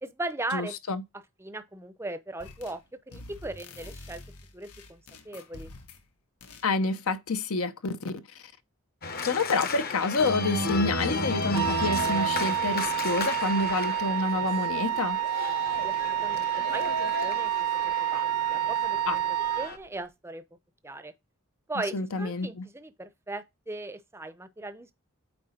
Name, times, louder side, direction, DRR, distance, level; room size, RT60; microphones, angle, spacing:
voice 1, 0.0-0.8 1.4-4.2 4.5-5.7 15.8-19.2 19.6-20.4 20.8-21.1 21.7-24.9, right 2 dB, 10° right, 0.6 m, -38 dB
voice 2, 0.5-1.0 6.6-8.1 9.2-15.2 19.1-19.2 21.9-22.7, left 3 dB, 70° left, 0.7 m, -28 dB
sound 1, 2.4-2.8 3.1-6.1 6.4-6.7, left 2 dB, 85° left, 1.4 m, -47 dB
Organ, 9.0-19.8, left 2 dB, 40° left, 0.9 m, -33 dB
Wind instrument woodwind instrument, 11.5-19.7, right 13 dB, 80° right, 0.3 m, -29 dB
8.8 x 3.1 x 4.2 m
head